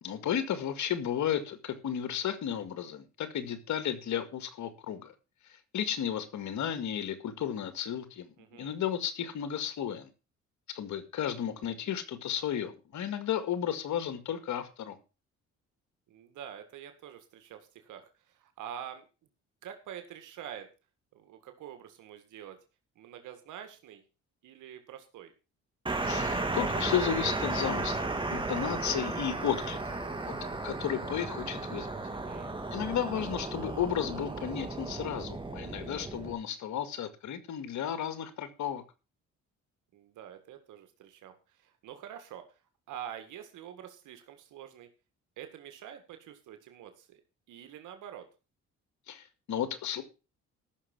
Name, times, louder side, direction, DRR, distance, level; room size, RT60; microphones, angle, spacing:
voice 1, 0.0-5.1 5.7-10.1 10.7-15.0 26.0-30.0 30.3-30.4 30.6-31.9 32.7-38.8 49.1-50.0, left 9 dB, 70° left, 2.2 m, -33 dB
voice 2, 8.4-8.8 16.1-19.1 19.6-20.7 21.1-22.6 23.0-24.0 24.4-25.3 32.1-32.6 39.9-42.4 42.9-44.9 45.4-47.2 47.5-48.3, right 9 dB, 80° right, 2.0 m, -46 dB
sound 1, 25.9-36.3, right 2 dB, 15° right, 2.9 m, -34 dB
14.5 x 6.5 x 6.1 m
cardioid pair, 90°, 30 cm